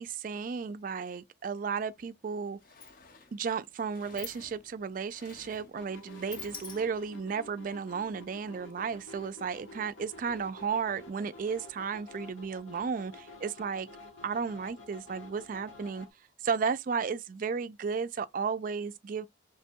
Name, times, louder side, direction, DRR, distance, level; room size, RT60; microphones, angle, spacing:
voice 1, 0.0-2.6 3.3-13.9 14.2-16.1 16.4-19.3, right 6 dB, 45° right, 0.3 m, -34 dB
Sliding door, 1.9-2.1 2.3-7.3, left 6 dB, 45° left, 0.5 m, -49 dB
sound 1, 5.7-16.1, left 2 dB, 80° left, 1.0 m, -50 dB
3.2 x 2.2 x 4.3 m
head